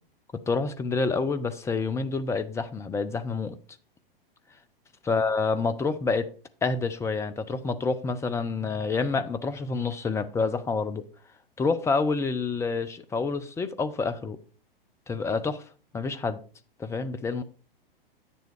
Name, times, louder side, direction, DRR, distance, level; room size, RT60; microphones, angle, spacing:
voice 1, 0.5-3.6 5.1-6.3 6.6-11.0 11.6-14.4 15.1-15.6 15.9-16.4 16.8-17.4, left 4 dB, 10° left, 0.6 m, -28 dB
9.2 x 7.0 x 4.7 m
figure-of-eight pair, 100°, 29 cm